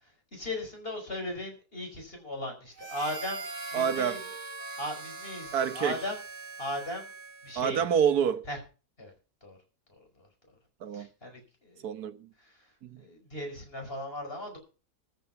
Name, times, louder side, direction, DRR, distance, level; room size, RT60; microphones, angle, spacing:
voice 1, 0.3-3.4 3.7-4.2 4.8-6.2 6.6-7.1 7.4-7.8 8.5-8.6 9.0-9.1 9.4-9.6 10.0-10.1 10.9-11.9 12.4-12.6 13.0-14.6, left 1 dB, 35° left, 5.2 m, -37 dB
Harmonica, 2.8-7.8, right 3 dB, 40° right, 2.2 m, -41 dB
voice 2, 3.7-4.2 5.5-6.0 7.5-8.5 10.8-11.1 11.8-12.3 12.8-13.0, right 8 dB, 75° right, 1.5 m, -27 dB
14.0 x 8.7 x 5.7 m
omnidirectional pair, 1.7 m